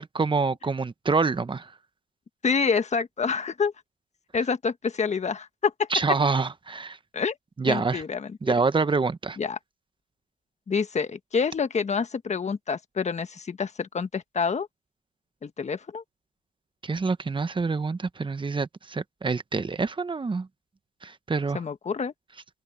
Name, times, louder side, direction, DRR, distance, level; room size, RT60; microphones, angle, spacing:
voice 1, 0.0-1.7 5.9-7.0 7.6-8.0 8.4-9.4 16.8-20.5 21.0-21.6, right 4 dB, 25° right, 1.1 m, -26 dB
voice 2, 2.4-3.7 4.3-5.9 7.1-7.4 7.6-8.4 9.4-9.6 10.7-14.7 15.4-16.0 21.5-22.1, left 5 dB, 35° left, 1.3 m, -27 dB
open air
cardioid pair, 90°, 20 cm